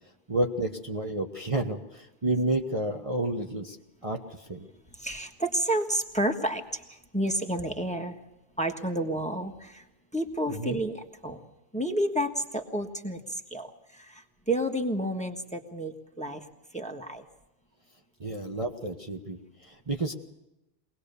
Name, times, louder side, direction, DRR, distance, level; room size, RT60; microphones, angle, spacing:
voice 1, 0.3-3.8 4.0-4.7 10.5-10.8 18.2-20.1, right 2 dB, 30° right, 1 dB, 1.2 m, -30 dB
voice 2, 5.0-8.2 8.6-9.8 10.1-11.4 11.7-16.4 16.7-17.2, right 1 dB, 5° left, 4 dB, 1.4 m, -30 dB
23.5 x 19.0 x 6.9 m, 0.94 s
omnidirectional pair, 1.2 m